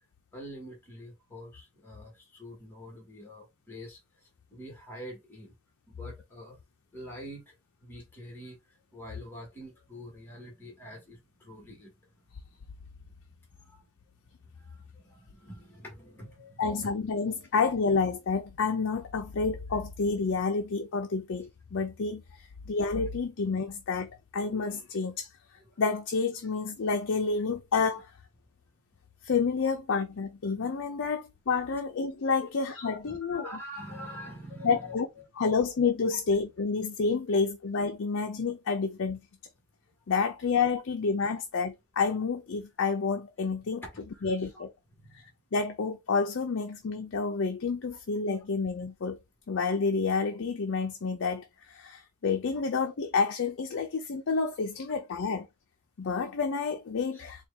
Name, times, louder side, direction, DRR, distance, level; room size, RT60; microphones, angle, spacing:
voice 1, 0.3-5.5 5.9-6.6 6.9-12.2 12.8-12.9 13.6-13.8 14.4-16.9 25.6-25.8 30.6-30.7 32.4-32.5 32.8-35.6 43.8-44.5 45.0-45.3 57.1-57.2, equal, 10° left, 1.4 m, -46 dB
voice 2, 16.6-25.3 25.8-28.1 29.2-33.5 34.6-35.1 35.4-39.2 40.1-43.8 44.2-44.7 45.1-45.2 45.5-49.2 49.5-55.5 56.0-57.5, left 4 dB, 60° left, 0.5 m, -29 dB
4.4 x 2.4 x 3.4 m
head